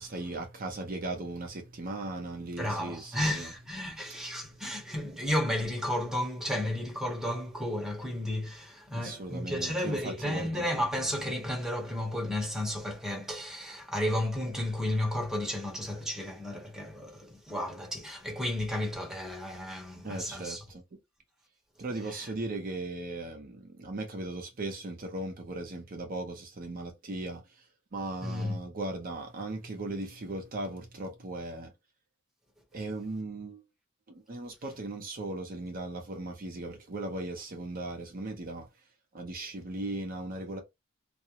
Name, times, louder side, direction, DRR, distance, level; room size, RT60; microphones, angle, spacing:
voice 1, 0.0-3.5 4.1-4.6 8.9-10.7 20.0-20.8 21.8-27.7 27.9-31.7 32.7-33.6 34.1-38.7 39.1-40.6, right 2 dB, 45° right, 0.5 m, -38 dB
voice 2, 2.6-20.6 22.1-22.2 28.2-28.6, left 1 dB, ahead, 0.8 m, -33 dB
2.3 x 2.0 x 2.7 m
head